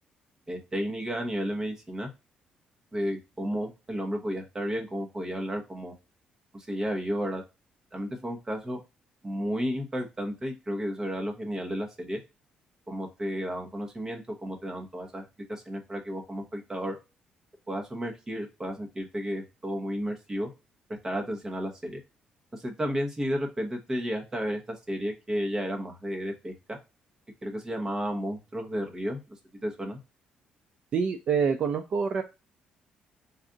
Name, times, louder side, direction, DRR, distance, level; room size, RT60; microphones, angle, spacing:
voice 1, 0.5-2.1 2.9-5.9 6.5-7.4 7.9-8.8 9.2-12.2 12.9-17.0 17.7-20.5 21.0-22.0 22.5-24.6 24.9-26.8 27.4-29.2 29.6-30.0, equal, 20° right, 2 dB, 1.1 m, -32 dB
voice 2, 30.9-32.2, right 6 dB, 50° right, 7 dB, 0.4 m, -26 dB
4.0 x 2.6 x 3.6 m, 0.27 s
cardioid pair, 135°, 3 cm